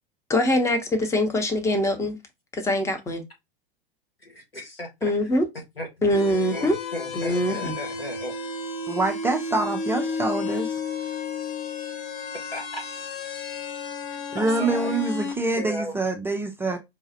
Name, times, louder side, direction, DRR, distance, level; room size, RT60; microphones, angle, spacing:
voice 1, 0.3-2.2 2.5-3.2 5.0-5.5 6.0-6.8 7.1-7.7, left 1 dB, 10° left, 0.7 m, -23 dB
voice 2, 4.2-5.1 5.8-5.9 6.5-8.3 12.5-12.8 14.1-15.0 15.6-16.0, left 1 dB, 85° left, 1.3 m, -35 dB
sound 1, 6.1-15.3, left 4 dB, 40° left, 0.9 m, -32 dB
voice 3, 8.9-10.8 14.3-16.8, right 2 dB, 10° right, 0.4 m, -25 dB
4.9 x 2.4 x 2.6 m
figure-of-eight pair, 90°, 29 cm